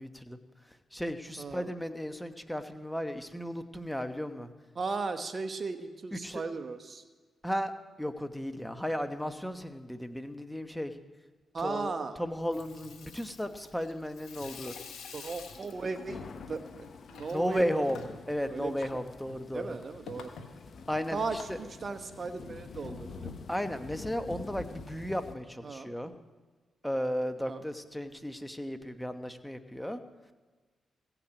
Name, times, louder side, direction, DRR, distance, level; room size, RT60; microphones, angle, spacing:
voice 1, 0.0-4.5 6.1-6.4 7.4-7.7 8.0-11.0 11.6-11.9 12.2-14.8 17.3-18.0 18.3-19.8 20.9-21.6 23.5-26.1 26.8-30.0, equal, 5° left, 8 dB, 1.1 m, -35 dB
voice 2, 1.4-1.7 4.7-7.0 11.5-12.2 15.1-17.9 18.5-18.7 19.5-20.3 21.1-23.4 25.6-25.9 27.5-27.6, right 4 dB, 50° right, 9 dB, 1.0 m, -36 dB
Water tap faucet / Sink (filling or washing), 12.3-22.5, left 5 dB, 80° left, 1.3 m, -49 dB
sound 1, 15.8-25.3, left 5 dB, 60° left, 0.8 m, -47 dB
16.0 x 5.9 x 8.2 m, 1.3 s
supercardioid pair, 50°, 0 cm